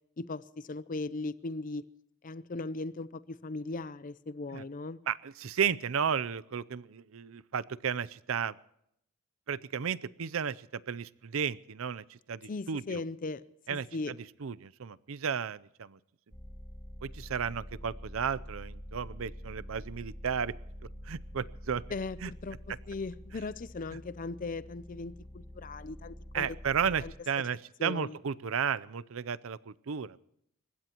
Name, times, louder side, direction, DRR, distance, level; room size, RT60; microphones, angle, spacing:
voice 1, 0.2-1.8 2.2-5.0 12.5-13.4 13.7-14.1 21.9-26.5 27.0-27.1 27.8-28.2, left 3 dB, 40° left, 0.5 m, -38 dB
voice 2, 5.1-8.5 9.5-13.0 13.7-13.9 14.4-16.0 17.0-20.5 21.1-21.8 22.2-22.3 26.3-30.2, right 7 dB, 60° right, 0.5 m, -33 dB
sound 1, 16.3-27.1, equal, 15° left, 2.0 m, -46 dB
29.5 x 16.0 x 3.0 m
head